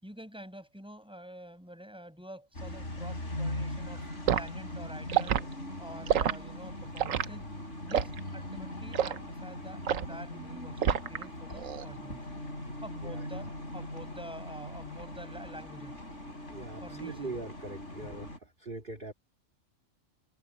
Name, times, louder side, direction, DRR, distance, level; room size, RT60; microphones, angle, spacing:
voice 1, 0.0-4.0 4.3-5.4 5.8-7.5 7.8-12.2 12.8-16.0 16.8-17.4 18.0-18.2, equal, 5° right, 5.7 m, -47 dB
sound 1, 2.5-18.4, left 1 dB, 65° left, 7.7 m, -40 dB
Liquid, 4.3-4.5 5.1-5.4 6.1-6.4 7.0-7.3 7.9-8.2 8.9-9.2 9.9-10.1 10.8-11.2 11.6-11.9, right 9 dB, 85° right, 1.2 m, -27 dB
voice 2, 13.0-13.4 16.5-18.3 18.6-19.1, right 3 dB, 40° right, 2.4 m, -41 dB
omnidirectional pair, 1.3 m